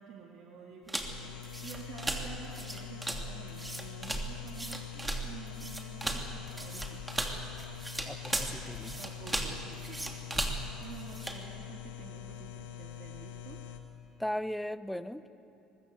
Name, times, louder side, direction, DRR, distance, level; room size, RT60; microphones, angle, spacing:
voice 1, 0.0-7.0 8.8-10.2 10.5-13.6, right 6 dB, 60° right, 1 dB, 2.1 m, -49 dB
sound 1, 0.9-11.4, right 1 dB, 10° right, 2.8 m, -37 dB
sound 2, 1.0-13.8, left 10 dB, 80° left, 1.8 m, -44 dB
voice 2, 8.0-9.0 14.2-15.3, equal, 5° left, 14 dB, 0.9 m, -37 dB
23.0 x 21.0 x 8.0 m, 2.8 s
hypercardioid pair, 65°, 0 cm